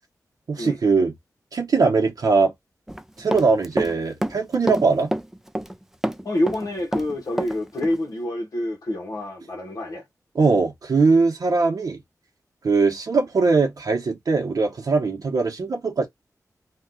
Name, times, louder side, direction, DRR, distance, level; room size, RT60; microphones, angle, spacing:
voice 1, 0.5-1.1 1.5-2.5 3.2-5.1 10.3-12.0 12.6-16.1, right 4 dB, 70° right, 0.8 m, -21 dB
Run, 2.9-3.9 4.2-5.8 6.0-7.6 7.8-8.0, right 1 dB, 5° right, 0.4 m, -27 dB
voice 2, 6.2-10.0, left 1 dB, 65° left, 1.0 m, -27 dB
2.7 x 2.3 x 3.6 m
wide cardioid pair, 70°, 7 cm